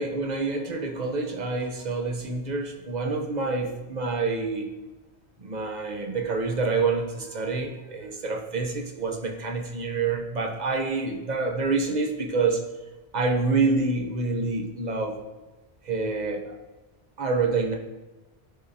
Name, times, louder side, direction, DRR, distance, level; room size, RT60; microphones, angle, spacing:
voice 1, 0.0-4.7 5.4-12.6 13.1-15.2 15.8-16.5 17.2-17.7, right 3 dB, 45° right, 2 dB, 0.8 m, -27 dB
10.0 x 3.8 x 2.7 m, 1.1 s
omnidirectional pair, 1.1 m